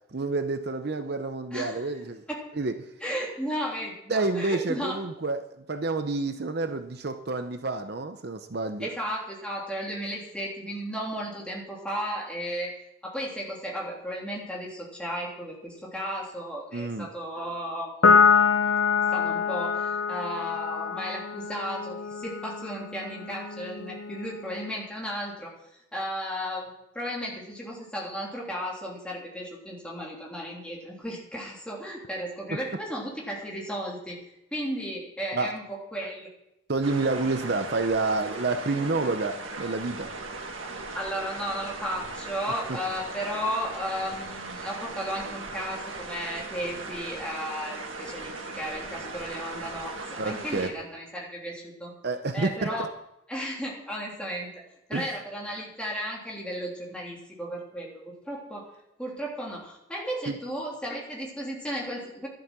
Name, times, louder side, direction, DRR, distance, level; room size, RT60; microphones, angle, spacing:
voice 1, 0.1-2.2 2.6-2.7 4.1-8.9 16.7-17.1 35.3-35.5 36.7-40.1 42.7-42.8 50.2-50.7 52.0-52.7 54.9-55.1 60.3-60.4, right 3 dB, 55° right, 0.7 m, -29 dB
voice 2, 1.5-2.0 2.3-2.5 3.0-5.0 8.8-12.7 13.0-18.0 19.1-25.5 25.9-34.2 34.5-36.3 40.9-51.9 52.3-52.9 53.3-54.5 54.9-57.9 58.2-58.7 59.0-62.3, equal, 5° left, 3.3 m, -34 dB
Piano, 18.0-24.7, left 6 dB, 75° left, 0.8 m, -25 dB
sound 1, 36.8-50.7, right 3 dB, 85° right, 1.9 m, -38 dB
11.5 x 11.5 x 6.1 m
head